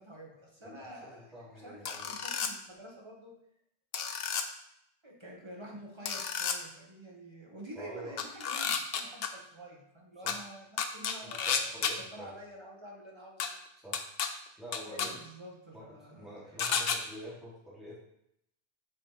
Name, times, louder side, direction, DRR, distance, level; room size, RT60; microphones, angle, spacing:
voice 1, 0.0-3.3 5.0-11.8 12.1-13.5 14.9-16.7, right 1 dB, 25° right, -2 dB, 1.7 m, -48 dB
voice 2, 0.6-2.1 7.7-8.2 10.2-10.4 11.2-12.3 13.7-14.0 14.6-15.2 15.7-15.8 16.1-18.0, right 1 dB, ahead, -9 dB, 2.7 m, -47 dB
sound 1, 1.9-2.5 3.9-4.4 6.1-6.6 8.2-9.3 10.3-10.4 10.8-11.9 13.4-13.5 13.9-14.3 14.7-15.1 16.6-17.0, left 7 dB, 65° left, 0.8 m, -31 dB
7.5 x 5.9 x 3.4 m, 0.77 s
omnidirectional pair, 1.1 m